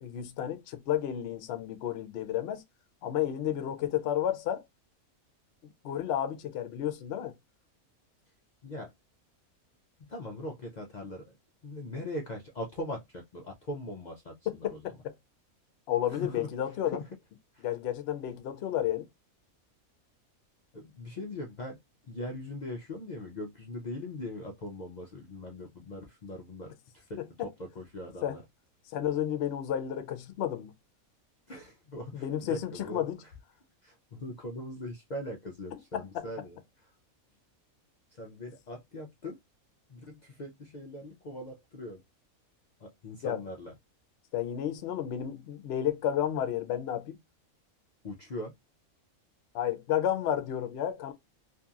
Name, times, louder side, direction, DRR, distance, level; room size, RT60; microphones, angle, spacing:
voice 1, 0.0-2.6 3.0-4.6 5.8-7.3 14.8-15.1 15.9-17.0 17.6-19.1 28.2-28.4 28.9-30.7 32.1-33.2 35.9-36.2 43.2-43.4 44.3-47.2 49.5-51.1, left 10 dB, 65° left, 0.7 m, -31 dB
voice 2, 10.1-11.4 11.6-14.9 16.1-16.5 16.8-17.1 17.5-17.7 20.7-28.4 31.5-33.3 33.8-36.6 38.1-39.4 39.9-42.0 42.8-43.7 48.0-48.5, left 1 dB, 85° left, 0.4 m, -41 dB
2.8 x 2.6 x 2.3 m
omnidirectional pair, 1.5 m